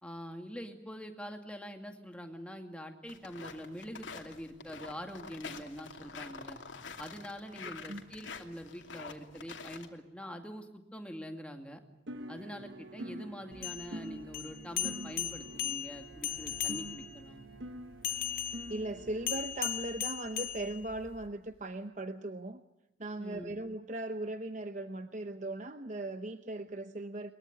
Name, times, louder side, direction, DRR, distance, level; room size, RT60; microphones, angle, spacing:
voice 1, 0.0-6.6 7.0-11.8 12.3-17.4 23.2-23.6, equal, 5° left, 4 dB, 2.2 m, -44 dB
sound 1, 3.1-9.9, left 5 dB, 85° left, 2.7 m, -46 dB
sound 2, 12.1-19.5, right 1 dB, 75° right, 1.3 m, -46 dB
sound 3, 13.5-17.2 18.0-21.2, left 11 dB, 50° left, 1.6 m, -37 dB
voice 2, 18.7-22.6 23.0-27.3, right 2 dB, 40° right, 8 dB, 0.8 m, -38 dB
22.5 x 22.0 x 9.5 m, 0.89 s
head